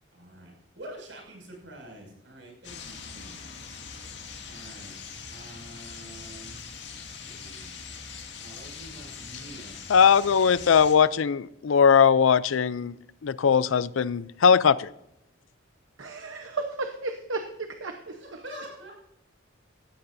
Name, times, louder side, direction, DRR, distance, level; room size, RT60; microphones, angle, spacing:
voice 1, 0.1-3.4 4.5-4.9 5.3-6.6 6.9-7.7 8.4-9.8 18.1-18.9, right 1 dB, 70° right, 6.2 m, -46 dB
sound 1, 2.6-10.9, left 5 dB, 65° left, 2.0 m, -42 dB
voice 2, 9.9-12.9 13.2-14.9, left 6 dB, 85° left, 0.5 m, -20 dB
voice 3, 16.0-18.0, right 3 dB, 85° right, 1.0 m, -33 dB
17.0 x 14.0 x 2.7 m
head